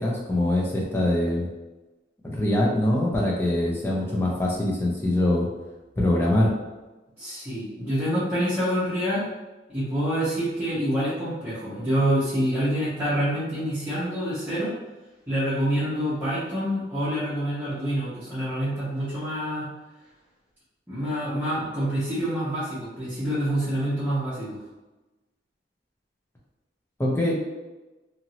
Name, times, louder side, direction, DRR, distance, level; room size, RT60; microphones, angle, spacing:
voice 1, 0.0-1.5 2.2-5.5 6.0-6.5 27.0-27.3, left 1 dB, 15° left, -4 dB, 0.6 m, -23 dB
voice 2, 7.2-9.3 9.7-14.7 15.3-19.7 20.9-24.6, equal, 10° right, -13 dB, 0.9 m, -27 dB
2.9 x 2.7 x 2.7 m, 1.1 s
head